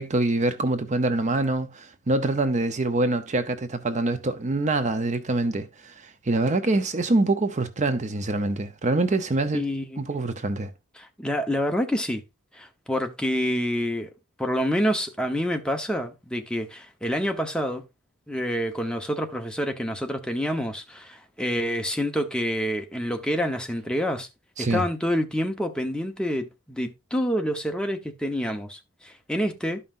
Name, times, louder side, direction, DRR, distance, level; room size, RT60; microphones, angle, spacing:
voice 1, 0.0-9.6 10.0-10.7 24.6-24.8, right 2 dB, 35° right, 0.6 m, -25 dB
voice 2, 9.5-10.0 11.0-12.2 12.5-14.1 14.4-17.8 18.3-24.3 24.6-29.8, equal, 5° left, 0.9 m, -27 dB
12.5 x 5.5 x 2.5 m
head